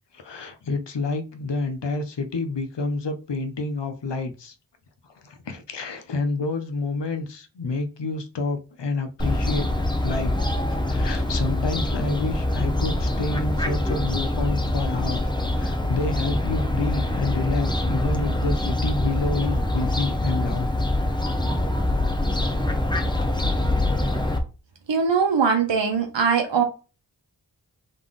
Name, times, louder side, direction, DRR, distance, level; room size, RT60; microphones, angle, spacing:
voice 1, 0.1-4.5 5.2-10.3 10.7-20.7 22.3-22.5, left 3 dB, 75° left, 0.9 m, -29 dB
Fowl, 9.2-24.4, left 1 dB, 10° left, 0.8 m, -24 dB
voice 2, 24.9-26.6, right 6 dB, 85° right, 0.9 m, -21 dB
3.9 x 3.3 x 3.7 m
wide cardioid pair, 60°, 43 cm